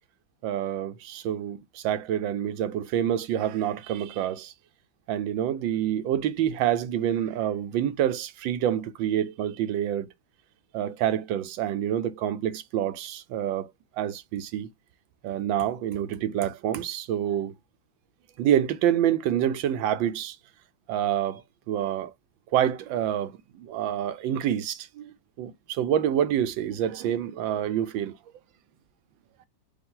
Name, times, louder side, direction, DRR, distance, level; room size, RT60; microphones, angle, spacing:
voice 1, 0.4-4.5 5.1-10.1 10.7-14.7 15.2-17.5 18.4-20.4 20.9-21.4 21.7-22.1 22.5-28.2, right 10 dB, 90° right, 1.4 m, -27 dB
5.1 x 2.6 x 3.7 m
omnidirectional pair, 2.0 m